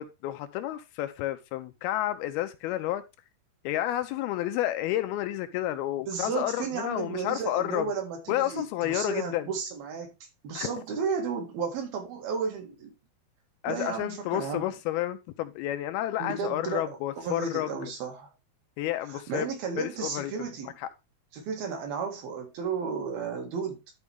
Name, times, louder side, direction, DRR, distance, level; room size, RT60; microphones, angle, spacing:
voice 1, 0.0-3.0 3.6-7.9 8.3-9.5 10.6-10.7 13.6-17.9 18.8-19.5 19.8-20.9, left 13 dB, 85° left, 2.4 m, -31 dB
voice 2, 6.0-10.1 10.4-12.9 13.7-14.7 16.2-18.3 19.1-20.7 21.3-23.8, right 5 dB, 65° right, 3.7 m, -33 dB
12.0 x 4.5 x 3.4 m
omnidirectional pair, 4.6 m